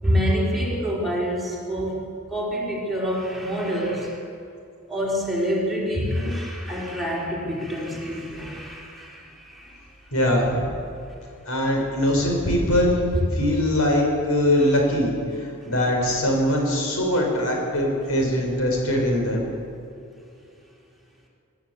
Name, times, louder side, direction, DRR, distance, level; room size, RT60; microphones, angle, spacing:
voice 1, 0.0-4.3 4.9-9.8, equal, ahead, -4 dB, 4.1 m, -26 dB
voice 2, 10.1-10.7 11.5-19.5, left 1 dB, 80° left, 0 dB, 5.3 m, -22 dB
24.5 x 12.5 x 8.4 m, 2.6 s
head